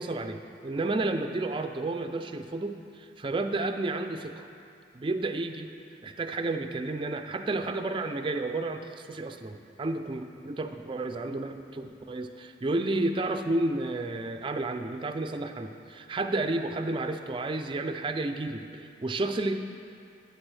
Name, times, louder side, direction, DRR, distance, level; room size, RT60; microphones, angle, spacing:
voice 1, 0.0-4.5 4.9-5.7 6.0-19.5, right 2 dB, 25° right, 7 dB, 0.4 m, -31 dB
12.0 x 8.1 x 3.3 m, 2.5 s
head